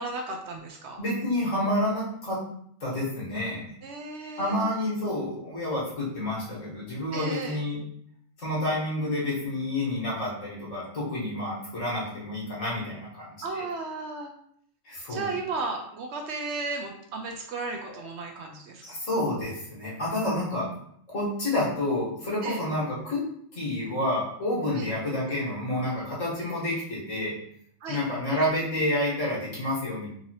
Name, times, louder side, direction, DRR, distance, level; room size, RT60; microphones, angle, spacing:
voice 1, 0.0-1.0 3.8-4.6 7.1-7.6 13.4-14.3 15.1-18.8 22.4-22.6 24.7-24.9 27.8-28.0, right 3 dB, 65° right, 3 dB, 0.8 m, -34 dB
voice 2, 1.0-2.4 2.8-3.8 4.4-7.8 8.4-13.7 14.8-15.3 18.8-20.7 21.1-23.2 23.5-27.3 27.9-30.1, left 1 dB, 75° left, -6 dB, 2.0 m, -29 dB
3.8 x 2.8 x 2.9 m, 0.67 s
omnidirectional pair, 1.3 m